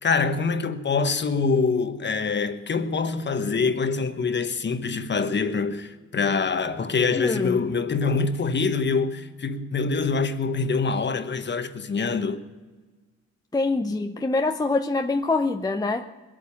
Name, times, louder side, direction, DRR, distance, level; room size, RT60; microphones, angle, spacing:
voice 1, 0.0-12.4, left 4 dB, 35° left, 1.2 m, -25 dB
voice 2, 7.2-7.6 13.5-16.1, left 3 dB, 15° left, 0.7 m, -25 dB
21.5 x 8.6 x 7.1 m
cardioid pair, 90°, 30 cm